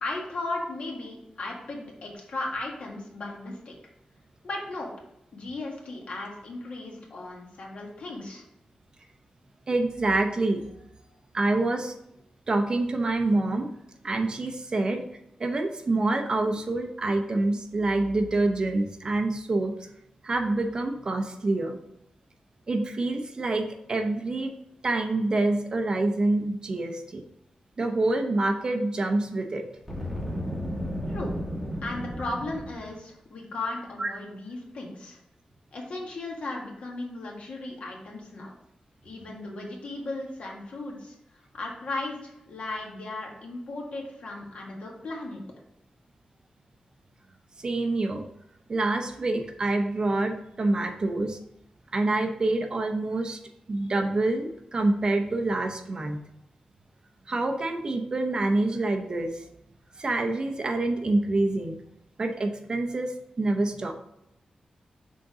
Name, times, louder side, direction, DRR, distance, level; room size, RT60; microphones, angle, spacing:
voice 1, 0.0-3.7 4.4-4.9 5.3-8.4 31.1-31.3 31.8-35.2 35.7-38.5 39.0-41.2 41.5-45.4, left 2 dB, 60° left, -1 dB, 1.8 m, -36 dB
voice 2, 9.7-10.6 11.3-11.9 12.5-13.7 14.0-15.0 15.4-19.7 20.2-21.8 22.7-24.5 24.8-27.2 27.8-29.7 34.0-34.1 47.6-48.2 48.7-51.4 51.9-53.4 53.7-56.2 57.3-59.4 60.0-61.8 62.2-63.1 63.4-63.9, right 2 dB, 35° right, 5 dB, 0.7 m, -26 dB
Boom, 29.8-32.9, equal, 5° left, 1.4 m, -33 dB
6.4 x 3.9 x 4.9 m, 0.82 s
wide cardioid pair, 155°, 2 cm